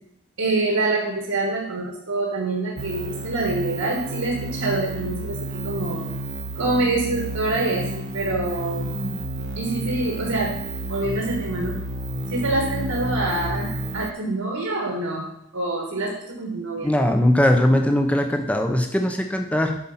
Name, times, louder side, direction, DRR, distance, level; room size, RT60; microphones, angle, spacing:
voice 1, 0.4-6.1 6.5-9.2 9.5-10.5 10.9-11.8 12.3-15.3 15.5-16.9, right 2 dB, 65° right, -1 dB, 1.5 m, -26 dB
sound 1, 2.8-14.1, right 1 dB, 50° right, 0.8 m, -31 dB
voice 2, 16.8-19.8, left 1 dB, 5° left, 5 dB, 0.7 m, -20 dB
8.5 x 5.2 x 5.7 m, 0.77 s
head